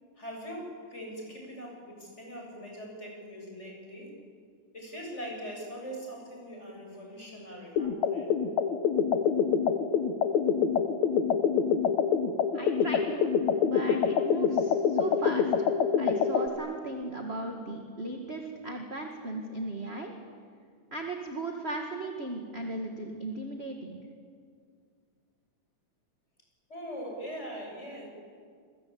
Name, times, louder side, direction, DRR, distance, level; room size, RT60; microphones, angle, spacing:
voice 1, 0.2-4.2 4.7-8.3 26.7-28.1, equal, 20° left, 0 dB, 7.5 m, -41 dB
sound 1, 7.8-16.5, left 7 dB, 65° left, 2.3 m, -26 dB
voice 2, 12.5-13.3 13.6-15.7 16.0-20.1 20.9-24.0, right 2 dB, 25° right, 2 dB, 1.7 m, -37 dB
27.5 x 22.0 x 8.8 m, 2.1 s
omnidirectional pair, 3.8 m